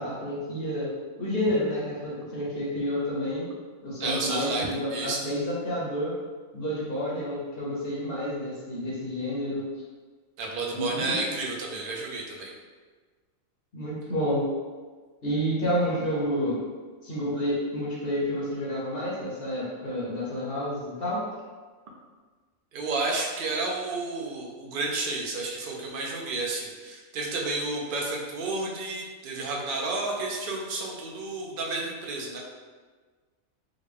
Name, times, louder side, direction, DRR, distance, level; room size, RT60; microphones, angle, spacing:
voice 1, 0.0-3.4 3.8-6.1 6.5-9.6 10.7-11.2 13.7-14.5 15.2-16.6 17.0-21.2, equal, 50° left, -6 dB, 0.9 m, -29 dB
voice 2, 4.0-4.6 4.9-5.2 10.4-12.5 22.7-32.4, right 3 dB, 55° right, -1 dB, 0.6 m, -31 dB
3.8 x 2.2 x 3.3 m, 1.4 s
omnidirectional pair, 1.4 m